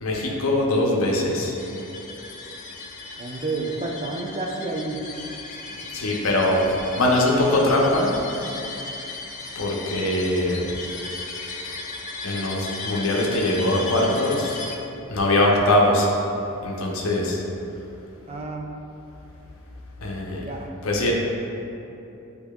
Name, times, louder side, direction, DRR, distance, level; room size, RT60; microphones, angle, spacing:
voice 1, 0.0-1.6 5.9-6.7 6.9-8.1 9.6-10.6 12.2-14.6 15.1-16.1 16.6-17.4 20.0-20.4 20.8-21.1, left 1 dB, 85° left, -2 dB, 0.7 m, -22 dB
sound 1, 1.6-14.8, left 3 dB, 35° left, 0.4 m, -36 dB
voice 2, 3.2-5.1 18.3-18.7 20.4-20.7, right 3 dB, 30° right, 1 dB, 0.4 m, -30 dB
8.3 x 2.8 x 2.2 m, 2.9 s
head